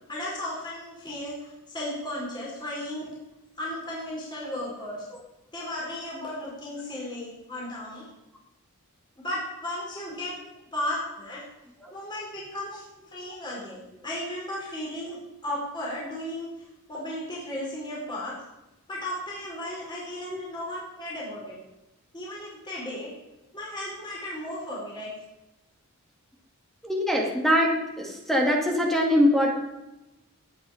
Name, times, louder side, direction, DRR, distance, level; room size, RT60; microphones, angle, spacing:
voice 1, 0.0-3.1 3.6-5.0 5.5-8.1 9.2-10.3 10.7-11.4 11.9-18.3 18.9-21.6 22.1-23.1 23.5-25.1, left 1 dB, 20° left, -5 dB, 4.6 m, -35 dB
voice 2, 26.8-29.5, equal, ahead, 0 dB, 2.0 m, -23 dB
19.0 x 9.0 x 5.1 m, 0.97 s
head